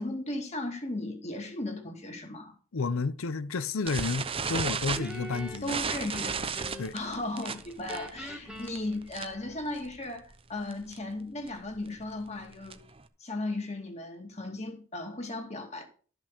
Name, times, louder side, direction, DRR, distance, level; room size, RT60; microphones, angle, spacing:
voice 1, 0.0-2.5 5.6-6.3 6.9-12.8 13.2-15.9, left 2 dB, 30° left, 2.4 m, -36 dB
voice 2, 2.7-5.8 6.8-6.9, left 4 dB, 75° left, 0.7 m, -31 dB
sound 1, 3.9-9.5 9.8-10.0 10.3-10.4 10.7-11.0 11.5-13.0, right 5 dB, 25° right, 0.8 m, -34 dB
Guitar, 5.0-7.1 7.4-9.7, equal, 5° right, 2.0 m, -43 dB
13.0 x 6.2 x 6.6 m
head